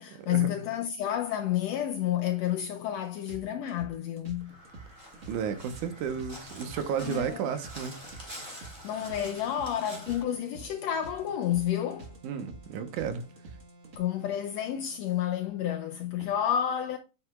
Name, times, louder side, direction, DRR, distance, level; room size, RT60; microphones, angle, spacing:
voice 1, 0.0-4.5 7.0-7.4 8.6-12.1 14.0-17.0, left 10 dB, 80° left, 1.5 m, -30 dB
sound 1, 3.3-14.0, right 3 dB, 45° right, 1.0 m, -48 dB
Crow, 4.4-10.2, equal, 10° right, 3.0 m, -46 dB
voice 2, 5.3-8.0 12.2-13.2, right 7 dB, 80° right, 2.4 m, -32 dB
sound 2, 9.0-14.8, equal, 60° right, 3.3 m, -55 dB
8.4 x 7.6 x 2.3 m
omnidirectional pair, 3.6 m